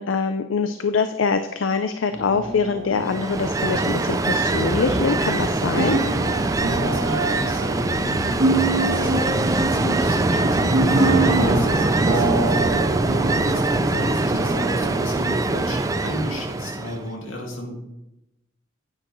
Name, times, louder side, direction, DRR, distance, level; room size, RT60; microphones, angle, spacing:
voice 1, 0.0-6.0, left 5 dB, 75° left, 9 dB, 0.5 m, -24 dB
sound 1, 2.1-16.8, right 2 dB, 70° right, 1.6 m, -26 dB
Ocean, 3.0-17.1, right 2 dB, 15° right, 0.3 m, -23 dB
sound 2, 4.4-5.8 6.1-7.4 7.7-8.7, equal, 15° left, 3.8 m, -34 dB
voice 2, 6.3-13.0 13.4-17.8, equal, 90° left, 0 dB, 2.4 m, -33 dB
9.7 x 8.9 x 3.1 m, 0.91 s
head